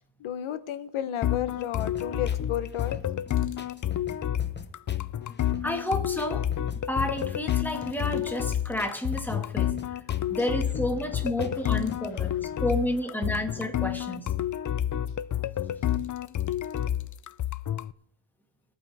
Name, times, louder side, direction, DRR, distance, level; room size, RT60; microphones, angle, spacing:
voice 1, 0.2-3.0, left 10 dB, 85° left, 1.0 m, -32 dB
sound 1, 1.2-17.9, left 11 dB, 40° left, 0.5 m, -29 dB
sound 2, 1.8-12.1, left 3 dB, 20° left, 1.1 m, -44 dB
voice 2, 5.6-6.5 6.9-9.8 10.3-12.4 12.6-14.3, left 1 dB, 5° left, 1.8 m, -30 dB
22.5 x 8.9 x 3.5 m
cardioid pair, 110°, 48 cm